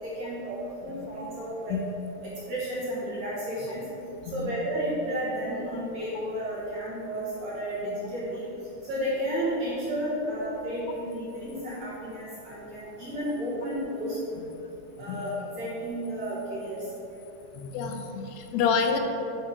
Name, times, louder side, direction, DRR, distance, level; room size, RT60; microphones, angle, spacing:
voice 1, 0.0-1.8 2.2-3.8 4.3-8.5 8.8-14.4 15.0-17.2, equal, 55° right, -9 dB, 2.3 m, -32 dB
voice 2, 17.5-19.0, left 6 dB, 85° left, 4 dB, 2.6 m, -28 dB
10.0 x 3.7 x 4.5 m, 2.9 s
omnidirectional pair, 4.7 m